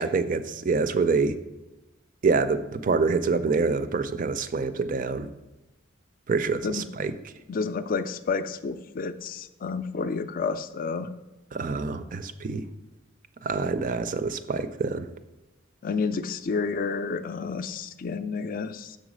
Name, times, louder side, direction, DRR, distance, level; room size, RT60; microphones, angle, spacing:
voice 1, 0.0-1.3 2.2-5.3 6.3-7.1 11.5-12.6 13.4-15.1, right 4 dB, 40° right, 12 dB, 0.4 m, -26 dB
voice 2, 7.5-11.1 15.8-19.0, left 4 dB, 45° left, 12 dB, 0.4 m, -30 dB
6.5 x 4.0 x 6.2 m, 1.0 s
head